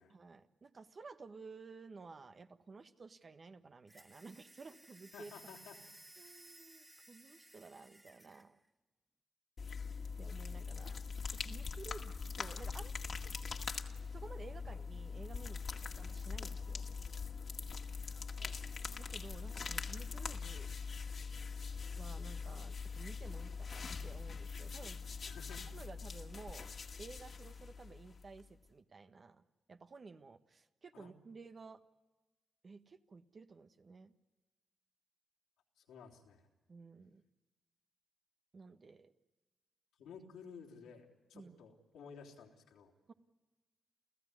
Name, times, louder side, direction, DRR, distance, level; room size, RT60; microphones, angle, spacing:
voice 1, 0.1-5.3 6.2-8.6 10.2-12.9 13.2-13.4 14.1-15.6 16.0-16.9 19.0-20.7 22.0-25.3 25.7-26.7 27.0-31.8 32.6-34.1 36.7-37.2 38.5-39.1 41.3-41.6 43.1-43.2, right 4 dB, 50° right, 8 dB, 1.4 m, -54 dB
sound 1, 3.9-8.5, right 1 dB, 20° right, 1.8 m, -59 dB
voice 2, 5.1-5.8 18.4-18.6 25.2-25.6 30.9-31.1 35.9-36.5 40.0-42.9, left 6 dB, 85° left, 0 dB, 3.3 m, -54 dB
sound 2, 9.6-28.5, left 5 dB, 55° left, 2.0 m, -43 dB
30.0 x 15.0 x 9.8 m, 1.2 s
supercardioid pair, 45°, 0 cm